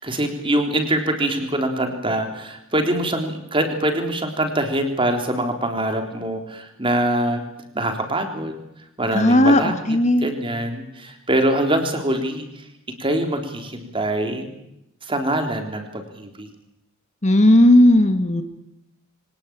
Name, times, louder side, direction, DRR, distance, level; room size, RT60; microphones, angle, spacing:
voice 1, 0.0-7.4 7.7-8.5 9.0-12.5 13.0-14.5 15.0-16.5, right 1 dB, 25° right, 5 dB, 3.7 m, -24 dB
voice 2, 9.1-10.3 17.2-18.4, left 1 dB, 35° left, 9 dB, 1.5 m, -15 dB
24.5 x 19.0 x 8.8 m, 0.86 s
head